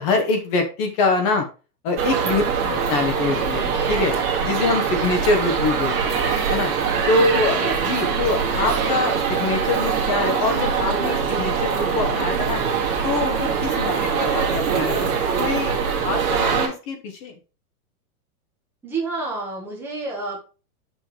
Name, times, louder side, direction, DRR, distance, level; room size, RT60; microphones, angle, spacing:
voice 1, 0.0-1.5 1.8-4.2 4.4-6.2 6.5-6.7 7.1-12.6 13.0-15.1 15.4-17.4, left 3 dB, 25° left, 4 dB, 1.0 m, -24 dB
sound 1, 2.0-16.7, right 6 dB, 40° right, 2.3 m, -23 dB
voice 2, 2.4-2.7 7.2-7.8 13.8-14.1 18.8-20.4, right 3 dB, 5° right, -4 dB, 1.4 m, -31 dB
8.6 x 6.4 x 3.3 m, 0.34 s
supercardioid pair, 175°, 45 cm